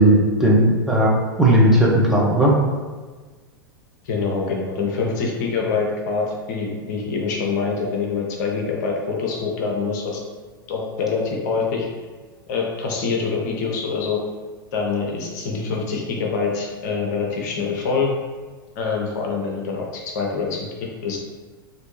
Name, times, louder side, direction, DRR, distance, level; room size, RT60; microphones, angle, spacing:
voice 1, 0.0-2.5, right 1 dB, 5° right, -6 dB, 0.7 m, -16 dB
voice 2, 4.0-10.2 10.7-11.9 12.5-14.2 14.7-18.1 18.8-20.7 21.0-21.2, left 4 dB, 50° left, 0 dB, 0.7 m, -25 dB
4.3 x 2.6 x 3.1 m, 1.4 s
figure-of-eight pair, 95°, 12 cm